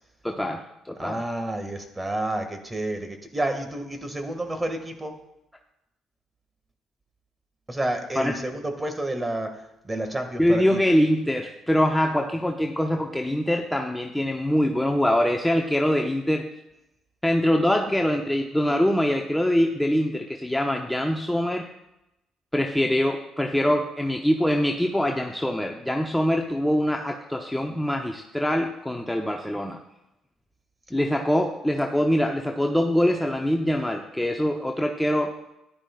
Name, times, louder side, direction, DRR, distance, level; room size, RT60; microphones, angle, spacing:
voice 1, 0.2-1.2 8.2-8.3 10.4-16.5 17.2-21.7 22.5-29.8 30.9-35.3, equal, 5° left, 3 dB, 0.8 m, -24 dB
voice 2, 1.0-5.1 7.7-10.8, right 1 dB, 20° right, 5 dB, 2.0 m, -30 dB
14.0 x 11.0 x 2.5 m, 0.89 s
hypercardioid pair, 55°, 0 cm